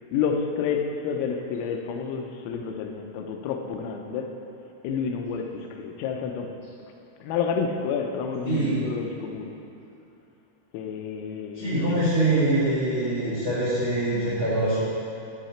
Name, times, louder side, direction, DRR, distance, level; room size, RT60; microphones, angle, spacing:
voice 1, 0.1-4.3 4.8-6.5 7.2-9.5 10.7-12.0, left 6 dB, 85° left, 4 dB, 3.3 m, -29 dB
voice 2, 8.4-8.8 11.5-14.8, right 2 dB, 45° right, -11 dB, 1.7 m, -24 dB
14.0 x 5.8 x 4.3 m, 2.8 s
omnidirectional pair, 5.9 m